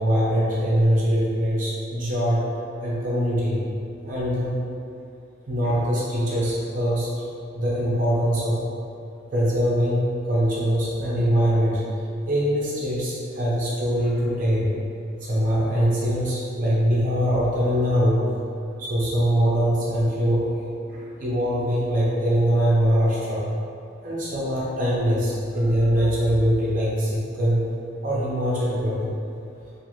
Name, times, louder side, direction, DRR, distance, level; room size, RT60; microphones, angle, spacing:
voice 1, 0.0-2.5 2.8-3.6 4.1-4.5 5.5-7.2 7.5-8.6 9.3-11.8 12.3-14.7 15.2-18.3 18.8-20.5 20.9-23.4 24.0-27.7 28.0-29.1, equal, 45° right, -7 dB, 0.5 m, -22 dB
2.5 x 2.4 x 2.9 m, 2.5 s
head